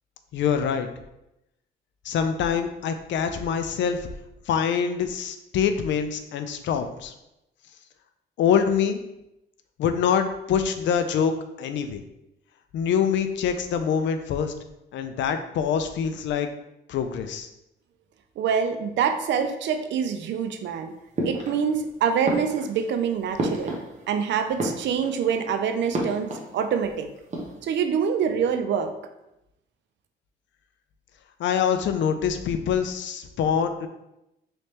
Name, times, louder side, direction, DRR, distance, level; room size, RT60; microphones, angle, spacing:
voice 1, 0.3-0.9 2.0-4.1 4.5-7.1 8.4-9.0 9.8-12.0 12.7-14.5 14.9-16.5 16.9-17.5 31.4-33.9, left 7 dB, 70° left, 8 dB, 0.4 m, -25 dB
voice 2, 18.4-20.9 21.2-23.8 24.1-27.1 27.6-28.9, right 7 dB, 65° right, 7 dB, 0.5 m, -25 dB
sound 1, 21.2-21.9 22.2-24.2 24.5-25.3 25.9-26.9 27.2-27.7, right 1 dB, 35° right, 0.9 m, -31 dB
3.3 x 3.1 x 2.9 m, 0.88 s
cardioid pair, 90°, 20 cm